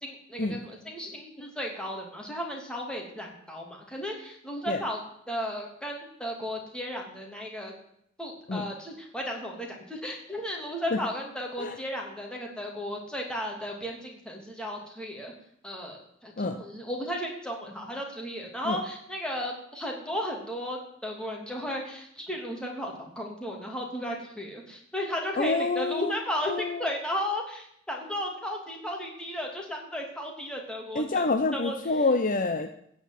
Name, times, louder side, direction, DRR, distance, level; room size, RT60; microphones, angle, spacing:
voice 1, 0.0-5.0 5.3-7.7 8.2-15.3 15.6-31.2 31.5-31.8, equal, 5° left, 0 dB, 2.9 m, -34 dB
voice 2, 25.4-26.1 26.5-26.9 30.9-32.7, left 3 dB, 45° left, 8 dB, 0.7 m, -27 dB
16.0 x 5.4 x 9.0 m, 0.71 s
head